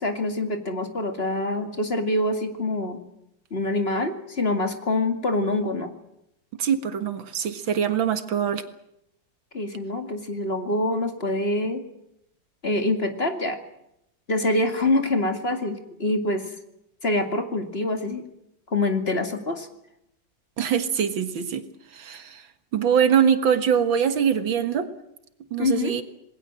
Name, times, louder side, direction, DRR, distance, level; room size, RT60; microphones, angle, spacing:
voice 1, 0.0-3.0 3.5-5.9 9.5-11.8 12.6-13.6 14.3-16.5 17.0-18.2 18.7-19.7 25.6-26.0, left 2 dB, 30° left, 6 dB, 2.4 m, -25 dB
voice 2, 6.6-8.6 20.6-21.6 21.9-22.4 22.7-24.9 25.5-26.0, right 8 dB, 90° right, 9 dB, 2.4 m, -23 dB
27.5 x 20.5 x 7.6 m, 0.81 s
omnidirectional pair, 2.1 m